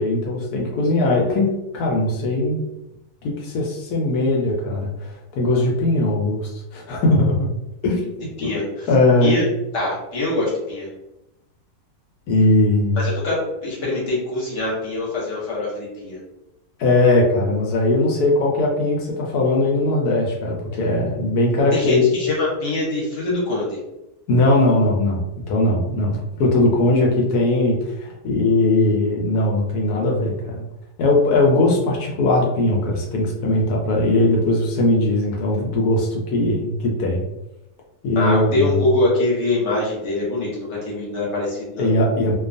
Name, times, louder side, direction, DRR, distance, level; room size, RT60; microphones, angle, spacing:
voice 1, 0.0-2.6 3.2-7.5 7.8-8.5 8.9-9.5 12.3-13.1 16.8-22.0 24.3-25.2 25.5-30.6 31.0-37.2 38.0-38.8 41.8-42.3, left 2 dB, 80° left, 0 dB, 1.1 m, -19 dB
voice 2, 8.4-8.9 9.2-9.4 9.7-10.9 13.0-16.2 21.7-23.8 38.2-41.9, left 2 dB, 55° left, -5 dB, 1.1 m, -23 dB
2.6 x 2.3 x 2.5 m, 0.91 s
omnidirectional pair, 1.6 m